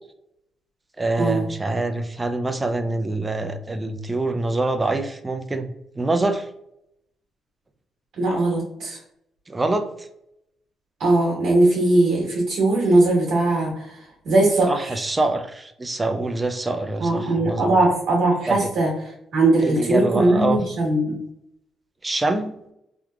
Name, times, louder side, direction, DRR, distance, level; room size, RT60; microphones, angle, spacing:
voice 1, 1.0-6.5 9.5-10.1 14.7-17.8 18.5-18.7 19.6-20.6 22.0-22.5, right 2 dB, 20° right, 7 dB, 0.4 m, -25 dB
voice 2, 8.2-9.0 11.0-13.9 14.2-14.9 17.0-18.9 19.3-21.2, right 2 dB, 70° right, -3 dB, 1.4 m, -20 dB
3.5 x 2.8 x 2.4 m, 0.77 s
cardioid pair, 90°, 0 cm